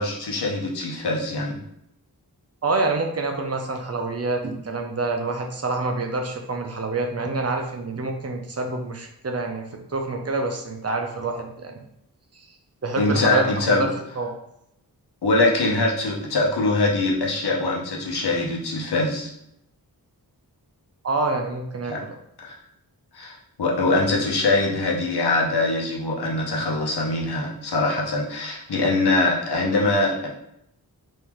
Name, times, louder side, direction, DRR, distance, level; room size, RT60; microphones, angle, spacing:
voice 1, 0.0-1.6 13.0-13.9 15.2-19.3 21.9-22.0 22.4-22.6 23.1-30.3, left 2 dB, 80° left, -2 dB, 0.8 m, -23 dB
voice 2, 2.6-9.6 9.9-11.7 12.8-13.9 14.2-14.3 21.0-21.9, right 3 dB, 40° right, 3 dB, 0.6 m, -27 dB
3.6 x 2.7 x 3.0 m, 0.77 s
wide cardioid pair, 90°, 38 cm